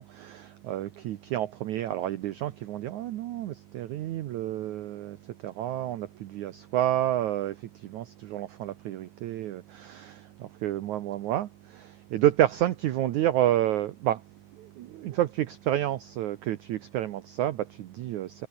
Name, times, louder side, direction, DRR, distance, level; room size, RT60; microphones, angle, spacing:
voice 1, 0.0-18.5, right 13 dB, 70° right, 1.9 m, -30 dB
omnidirectional pair, 4.5 m